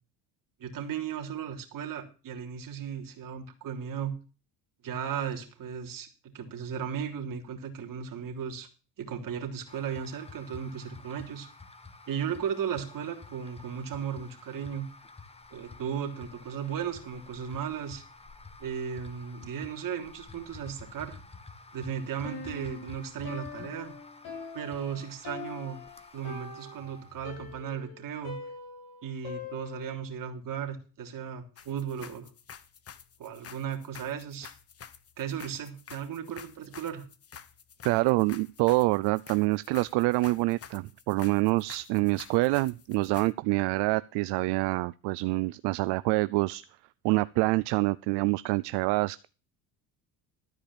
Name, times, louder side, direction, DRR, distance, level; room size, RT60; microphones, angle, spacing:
voice 1, 0.6-4.2 4.8-6.1 6.3-8.7 9.0-11.5 12.1-14.9 15.5-18.0 18.6-21.2 21.7-23.9 24.5-25.8 26.1-28.4 29.0-32.3 33.2-34.5 35.2-37.0, right 8 dB, 50° right, 4 dB, 3.3 m, -36 dB
sound 1, 9.7-27.6, left 3 dB, 15° left, 1.4 m, -50 dB
Piano, 22.2-30.1, left 4 dB, 65° left, 7.1 m, -43 dB
sound 2, 31.6-43.3, left 7 dB, 35° left, 1.2 m, -49 dB
voice 2, 37.8-46.6 47.0-49.3, right 21 dB, 75° right, 16 dB, 0.6 m, -26 dB
13.5 x 5.0 x 8.7 m, 0.34 s
cardioid pair, 100°, 41 cm